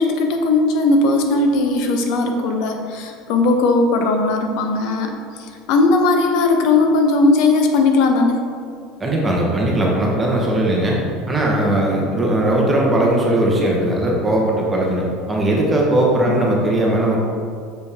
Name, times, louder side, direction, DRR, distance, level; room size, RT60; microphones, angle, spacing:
voice 1, 0.0-5.1 5.7-8.4 16.3-16.4, left 3 dB, 60° left, 4 dB, 0.8 m, -17 dB
voice 2, 9.0-11.0 11.3-17.2, right 1 dB, 15° right, -3 dB, 1.1 m, -18 dB
6.7 x 5.2 x 3.6 m, 2.2 s
cardioid pair, 145°, 0 cm